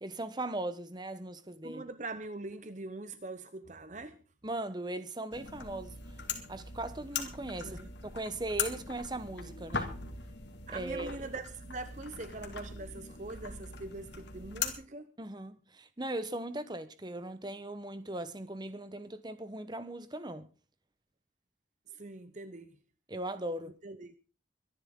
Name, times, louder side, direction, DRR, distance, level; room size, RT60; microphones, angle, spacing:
voice 1, 0.0-1.8 4.4-6.0 6.5-10.0 10.7-11.2 15.2-20.5 23.1-23.7, right 1 dB, 20° right, 1.1 m, -39 dB
voice 2, 1.6-4.2 7.6-7.9 10.7-15.1 21.9-22.8 23.8-24.1, right 2 dB, 40° right, 0.8 m, -43 dB
sound 1, 5.3-14.7, left 5 dB, 70° left, 2.4 m, -40 dB
24.0 x 11.0 x 3.8 m
head